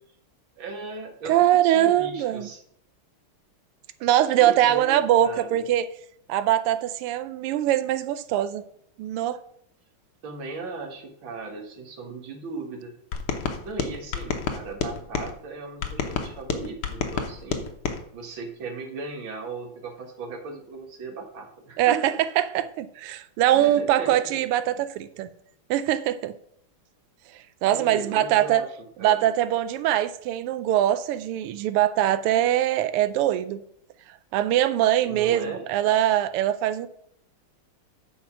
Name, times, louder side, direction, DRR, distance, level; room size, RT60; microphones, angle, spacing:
voice 1, 0.6-2.6 4.4-5.6 10.2-12.9 13.6-17.7 18.1-22.0 23.5-24.3 27.7-28.7 29.0-29.3 35.0-35.7, right 4 dB, 65° right, 2 dB, 2.2 m, -37 dB
voice 2, 1.3-2.5 4.0-5.9 6.3-8.6 9.0-9.4 21.8-25.3 25.7-26.3 27.3-28.6 29.0-33.6 34.1-36.9, right 12 dB, 90° right, 12 dB, 1.5 m, -22 dB
sound 1, 13.1-15.3 15.8-18.0, left 6 dB, 80° left, 1.9 m, -29 dB
8.9 x 5.2 x 5.9 m, 0.69 s
omnidirectional pair, 2.4 m